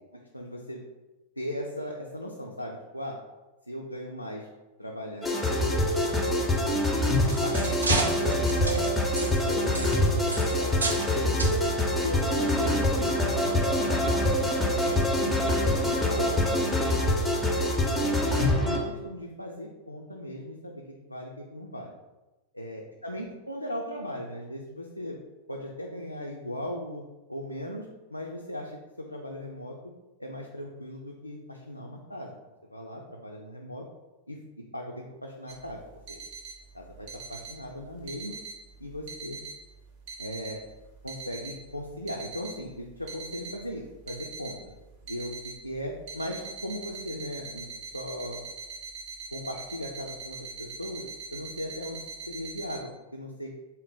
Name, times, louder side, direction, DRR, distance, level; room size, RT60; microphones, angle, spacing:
voice 1, 0.3-0.8 1.4-3.2 3.7-4.5 4.8-6.5 7.4-11.6 12.0-14.2 14.8-17.4 17.9-21.9 22.5-25.2 25.5-27.0 27.3-29.8 30.2-32.4 32.7-33.9 34.3-34.4 34.7-35.8 36.1-36.2 36.7-38.4 38.8-39.4 40.2-40.6 41.0-44.6 45.0-47.7 47.9-48.4 49.3-51.0 51.3-53.5, equal, 90° left, -1 dB, 0.3 m, -38 dB
sound 1, 5.2-18.8, left 1 dB, 5° left, 0.6 m, -25 dB
sound 2, 7.0-11.1 11.4-11.6 12.3-12.4 12.9-13.0, right 2 dB, 75° right, 0.5 m, -32 dB
sound 3, 35.5-52.8, right 4 dB, 50° right, 0.9 m, -42 dB
3.8 x 2.1 x 3.8 m, 1.1 s
figure-of-eight pair, 90°, 0 cm